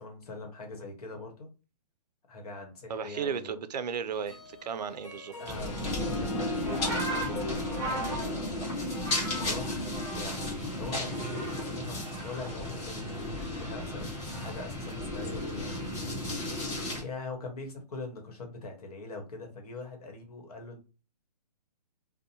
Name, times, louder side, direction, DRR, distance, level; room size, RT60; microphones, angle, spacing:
voice 1, 0.0-1.5 2.3-3.6 5.4-20.8, left 3 dB, 65° left, 1.1 m, -43 dB
voice 2, 2.9-5.4, right 6 dB, 75° right, 0.4 m, -34 dB
Harp, 4.1-9.7, left 2 dB, 45° left, 0.7 m, -39 dB
sound 1, 5.4-17.0, left 1 dB, 25° left, 1.2 m, -34 dB
sound 2, 6.6-10.6 10.9-11.8 12.1-14.7 15.6-15.9, right 1 dB, 5° left, 1.3 m, -39 dB
2.6 x 2.1 x 2.8 m
hypercardioid pair, 150°, 21 cm